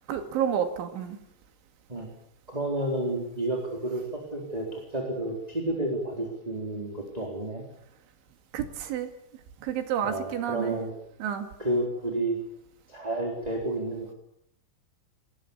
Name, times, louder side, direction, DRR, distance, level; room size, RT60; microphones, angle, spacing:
voice 1, 0.1-1.2 8.5-9.1 9.6-10.8 11.2-11.5, right 9 dB, 80° right, 7 dB, 4.6 m, -30 dB
voice 2, 2.5-7.6 10.0-10.9 11.6-12.4 12.9-14.1, right 1 dB, 10° right, 1 dB, 3.3 m, -31 dB
27.5 x 20.5 x 7.2 m, 0.74 s
omnidirectional pair, 5.4 m